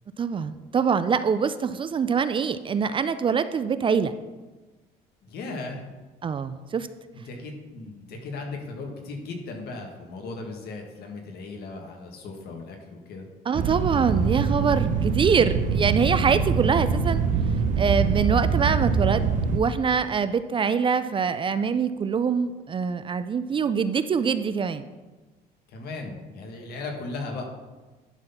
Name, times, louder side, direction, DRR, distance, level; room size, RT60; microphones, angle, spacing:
voice 1, 0.2-4.1 6.2-6.9 13.5-17.2 17.8-19.3 19.5-24.8, right 6 dB, 30° right, 12 dB, 0.4 m, -24 dB
voice 2, 5.2-5.8 7.1-13.3 25.7-27.4, left 3 dB, 70° left, 2 dB, 1.7 m, -37 dB
sound 1, 13.5-19.6, right 5 dB, 50° right, 0.8 m, -24 dB
10.5 x 4.1 x 5.6 m, 1.2 s
cardioid pair, 110°, 17 cm